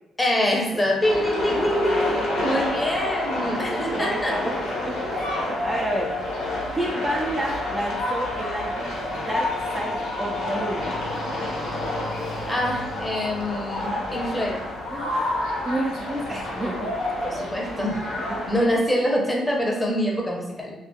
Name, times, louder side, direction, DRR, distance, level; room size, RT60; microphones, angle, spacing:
voice 1, 0.2-4.3 12.5-14.5 17.2-18.0 18.5-20.7, left 1 dB, 15° left, -2 dB, 0.6 m, -25 dB
sound 1, 1.0-18.7, left 1 dB, 80° left, 0.9 m, -29 dB
voice 2, 1.2-2.3 3.4-6.1 6.7-10.9 11.6-12.0 14.9-16.9 18.3-18.4, right 1 dB, 20° right, -1 dB, 0.3 m, -31 dB
Yell, 3.7-14.0, left 3 dB, 60° left, 0.4 m, -37 dB
2.4 x 2.2 x 2.7 m, 0.96 s
cardioid pair, 90°, 0 cm